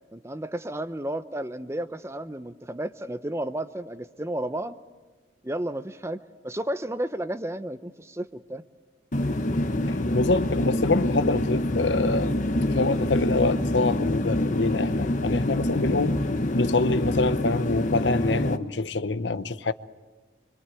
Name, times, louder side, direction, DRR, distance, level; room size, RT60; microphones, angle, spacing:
voice 1, 0.1-4.8 5.4-8.6 19.6-19.7, right 1 dB, 15° right, 0.8 m, -32 dB
sound 1, 9.1-18.6, left 1 dB, 45° left, 1.2 m, -26 dB
voice 2, 10.1-12.3 12.7-16.2 16.5-19.7, left 3 dB, 80° left, 0.9 m, -25 dB
26.0 x 25.0 x 9.1 m
head